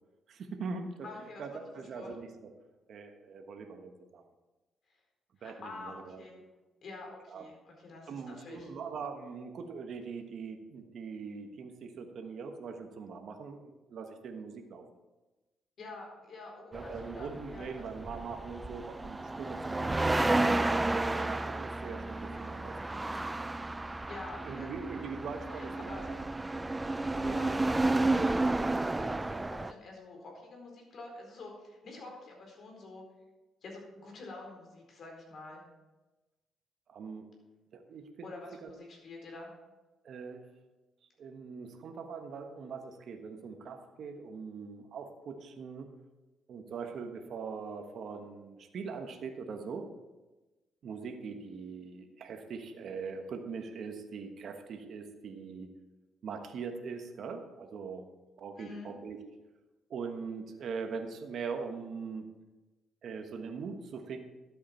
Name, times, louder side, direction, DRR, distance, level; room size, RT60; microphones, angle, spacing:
voice 1, 0.3-2.3 2.9-4.2 5.4-6.2 7.3-7.4 8.1-14.8 16.7-19.9 20.3-23.5 24.4-26.2 26.5-26.6 36.9-37.3 37.7-38.3 38.6-38.7 40.0-40.4 41.2-45.9 46.5-49.9 50.8-55.7 56.2-58.1 58.4-59.2 59.9-62.3 63.0-64.2, right 5 dB, 65° right, 5 dB, 1.3 m, -42 dB
voice 2, 1.0-2.1 5.4-6.4 6.8-8.7 15.8-17.9 24.1-25.1 25.5-26.0 27.2-33.0 33.6-35.6 38.2-39.5 58.6-58.9, left 2 dB, 55° left, 0 dB, 4.3 m, -47 dB
sound 1, 16.7-29.7, right 2 dB, 15° right, 0.4 m, -32 dB
12.5 x 8.4 x 4.5 m, 1.1 s
cardioid pair, 90°, 0 cm